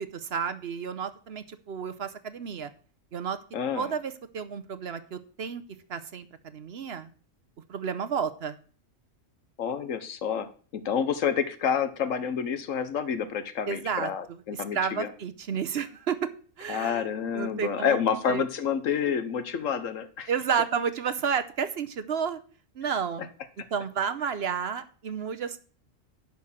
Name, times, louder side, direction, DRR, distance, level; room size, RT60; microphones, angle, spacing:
voice 1, 0.0-2.7 3.1-3.4 3.8-5.6 5.9-6.3 6.5-7.1 7.7-8.6 13.7-14.1 14.5-16.2 16.6-17.1 17.3-18.0 18.3-18.4 20.3-22.4 22.8-23.2 23.7-25.6, right 7 dB, 55° right, 12 dB, 0.9 m, -31 dB
voice 2, 3.5-3.9 9.6-15.1 16.7-20.3 22.8-22.9, left 7 dB, 80° left, 12 dB, 1.3 m, -29 dB
11.0 x 4.5 x 7.3 m, 0.41 s
omnidirectional pair, 1.4 m